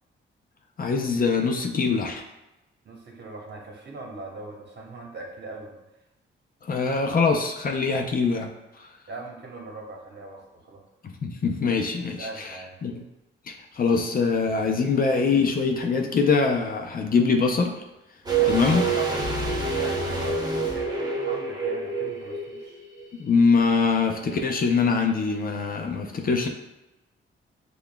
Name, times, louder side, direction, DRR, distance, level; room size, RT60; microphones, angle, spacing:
voice 1, 0.8-2.2 6.6-8.9 11.0-13.0 13.5-17.8 18.5-18.8 23.2-26.5, left 4 dB, 45° left, 3 dB, 0.5 m, -23 dB
voice 2, 2.8-5.8 9.1-10.8 12.0-12.8 18.3-22.8, right 2 dB, 55° right, 0 dB, 1.0 m, -40 dB
sound 1, 18.3-23.1 23.4-23.5, right 4 dB, 20° right, 0.7 m, -27 dB
6.8 x 2.3 x 2.2 m, 0.98 s
cardioid pair, 90°, 21 cm